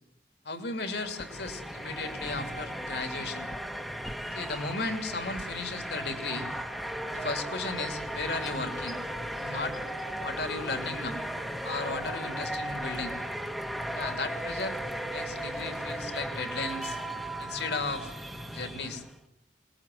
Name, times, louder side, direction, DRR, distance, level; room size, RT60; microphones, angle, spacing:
voice 1, 0.4-3.5 4.3-6.5 7.1-9.0 9.4-9.8 10.2-11.2 11.6-13.2 13.9-14.8 15.1-17.0 17.4-18.1 18.5-19.0, left 3 dB, 60° left, 7 dB, 2.8 m, -35 dB
sound 1, 0.7-19.2, right 1 dB, ahead, 1.4 m, -36 dB
25.0 x 20.5 x 7.8 m, 0.77 s
head